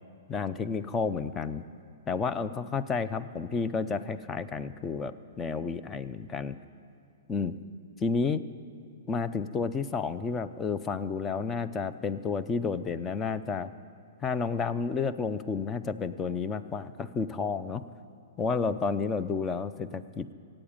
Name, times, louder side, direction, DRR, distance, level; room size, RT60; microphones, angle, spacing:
voice 1, 0.3-1.6 2.1-6.6 7.3-7.6 8.0-8.4 9.1-13.7 14.2-17.8 18.4-20.3, left 5 dB, 15° left, 12 dB, 0.5 m, -31 dB
16.0 x 8.8 x 8.8 m, 2.6 s
hypercardioid pair, 140°, 0 cm